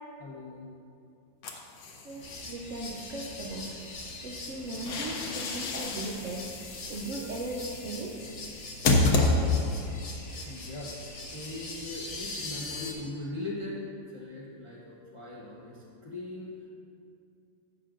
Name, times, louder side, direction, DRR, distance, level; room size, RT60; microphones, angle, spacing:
voice 1, 0.2-0.7 10.3-10.9 11.3-13.8 14.1-16.5, left 2 dB, 35° left, -5 dB, 0.5 m, -40 dB
sound 1, 1.4-2.5 4.5-9.8, left 3 dB, 65° left, 1.3 m, -29 dB
voice 2, 2.0-3.7 4.2-6.5 6.9-8.2, right 2 dB, 65° right, -2 dB, 0.8 m, -37 dB
sound 2, 2.2-12.9, left 2 dB, 50° left, 1.0 m, -42 dB
11.0 x 7.7 x 2.5 m, 2.5 s
omnidirectional pair, 2.0 m